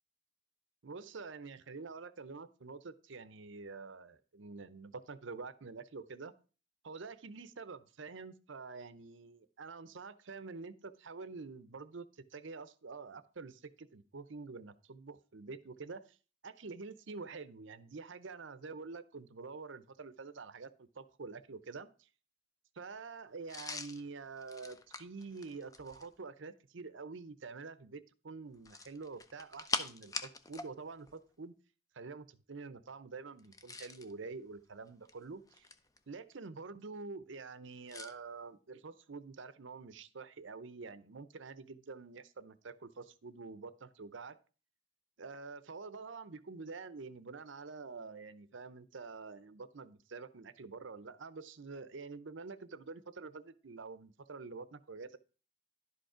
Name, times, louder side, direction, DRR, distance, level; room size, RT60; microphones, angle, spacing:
voice 1, 0.8-6.3 6.8-16.2 16.4-22.1 22.8-31.6 31.9-35.7 36.1-44.4 45.2-55.2, right 4 dB, 70° right, 14 dB, 0.7 m, -47 dB
sound 1, 23.5-26.2 28.6-30.7 31.0-31.2 33.4-34.1 34.9-36.0 37.9-38.1, left 4 dB, 15° left, 0.5 m, -42 dB
11.0 x 5.2 x 4.9 m, 0.37 s
head